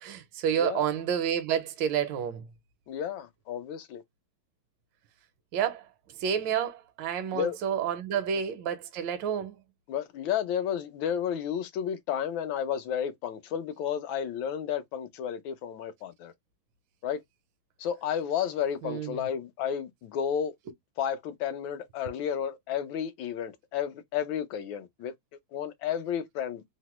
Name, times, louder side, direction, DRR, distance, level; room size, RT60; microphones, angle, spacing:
voice 1, 0.0-2.5 5.5-5.9 6.2-9.6 18.8-19.3, right 8 dB, 75° right, 1.3 m, -29 dB
voice 2, 0.5-0.9 2.9-4.0 7.3-7.6 9.9-16.3 17.0-17.2 17.8-20.5 21.0-25.1 25.5-26.6, left 8 dB, 80° left, 1.4 m, -32 dB
3.6 x 2.1 x 2.9 m
omnidirectional pair, 2.2 m